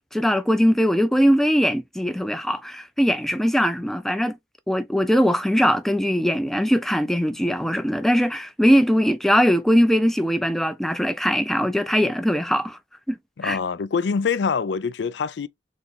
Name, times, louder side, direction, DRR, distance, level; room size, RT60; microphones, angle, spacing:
voice 1, 0.1-4.4 4.7-12.8 13.1-13.2 13.4-13.6, equal, ahead, 0.4 m, -21 dB
voice 2, 13.4-15.5, left 5 dB, 75° left, 0.4 m, -25 dB
4.1 x 3.0 x 3.8 m
head